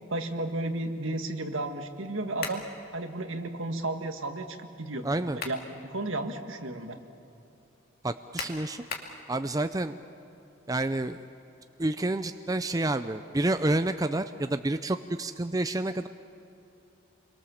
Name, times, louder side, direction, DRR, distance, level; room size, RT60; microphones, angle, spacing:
voice 1, 0.1-2.6 2.9-5.1 5.5-5.6 5.8-7.0, right 2 dB, 75° right, 6 dB, 1.8 m, -33 dB
sound 1, 2.4-2.7 5.1-5.7 6.2-6.3 8.4-9.2, left 5 dB, 50° left, 2.5 m, -37 dB
voice 2, 5.0-5.4 8.0-8.8 9.3-10.0 10.7-11.2 11.8-16.1, right 2 dB, 20° right, 9 dB, 0.5 m, -29 dB
28.5 x 23.0 x 7.2 m, 2.8 s
head